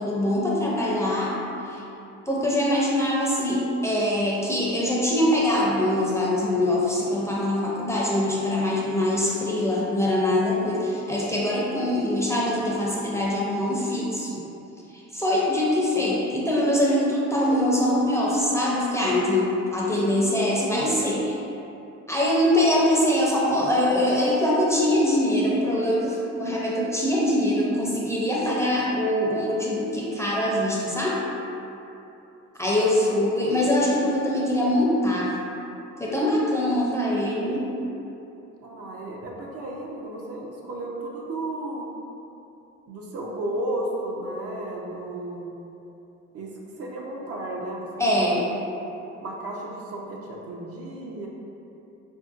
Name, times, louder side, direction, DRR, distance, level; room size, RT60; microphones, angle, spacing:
voice 1, 0.0-1.4 1.7-1.8 2.3-14.4 14.9-21.4 22.1-31.2 32.6-35.3 36.0-37.7 48.0-48.4, left 1 dB, 10° left, -6 dB, 0.5 m, -23 dB
voice 2, 38.6-41.9 42.9-45.5 46.3-47.9 48.3-48.5 48.7-48.8 49.2-51.3, right 1 dB, 50° right, -3 dB, 0.5 m, -33 dB
3.5 x 2.6 x 2.4 m, 2.9 s
cardioid pair, 90°, 30 cm